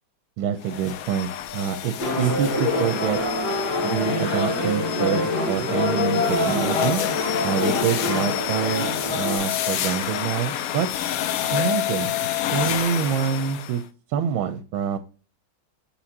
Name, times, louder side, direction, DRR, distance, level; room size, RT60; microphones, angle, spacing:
voice 1, 0.4-3.2 3.8-7.0 7.4-10.9 11.5-12.1 12.5-13.8 14.1-15.0, right 8 dB, 85° right, 7 dB, 1.4 m, -26 dB
sound 1, 0.6-13.8, left 11 dB, 85° left, 0.7 m, -29 dB
sound 2, 2.0-9.4, left 2 dB, 55° left, 2.4 m, -25 dB
8.5 x 4.3 x 2.7 m, 0.36 s
omnidirectional pair, 2.2 m